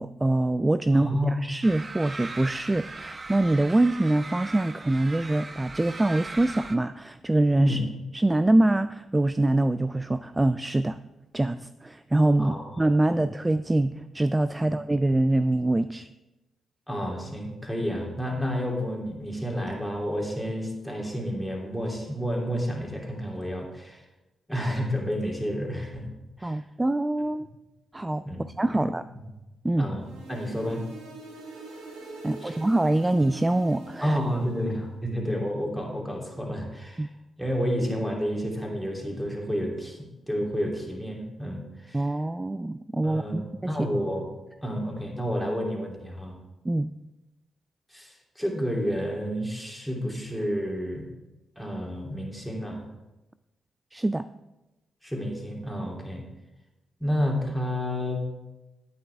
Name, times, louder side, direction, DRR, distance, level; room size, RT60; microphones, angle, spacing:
voice 1, 0.0-1.1 1.4-7.8 8.1-11.0 11.3-16.1 26.4-27.5 27.9-28.2 28.6-29.0 29.6-29.9 32.2-34.2 37.0-37.1 41.9-43.7 46.6-46.9 53.9-54.3, right 2 dB, 20° right, 13 dB, 0.3 m, -24 dB
voice 2, 0.9-1.3 7.6-7.8 12.4-12.6 13.1-13.2 14.6-14.7 16.9-24.0 24.5-26.1 26.4-26.6 28.2-28.5 28.7-28.8 29.8-30.8 32.4-32.5 34.0-37.1 37.4-42.0 43.0-44.3 44.6-46.4 47.9-51.1 51.6-52.8 55.0-56.2 57.0-58.2, equal, ahead, -1 dB, 3.0 m, -30 dB
sound 1, 1.6-6.8, right 3 dB, 40° right, 0.9 m, -39 dB
sound 2, 30.0-34.8, right 2 dB, 85° right, 1.6 m, -44 dB
9.8 x 9.0 x 3.5 m, 1.0 s
hypercardioid pair, 40°, 0 cm